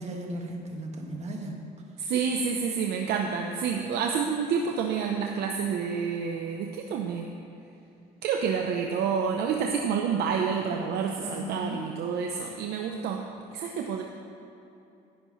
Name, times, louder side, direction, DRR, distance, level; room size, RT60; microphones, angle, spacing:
voice 1, 0.0-1.6 11.2-11.8, right 1 dB, 40° right, 1 dB, 1.8 m, -36 dB
voice 2, 2.0-7.3 8.2-13.3 13.5-14.0, right 6 dB, 75° right, 2 dB, 0.8 m, -28 dB
16.0 x 10.5 x 3.2 m, 2.8 s
cardioid pair, 110°, 17 cm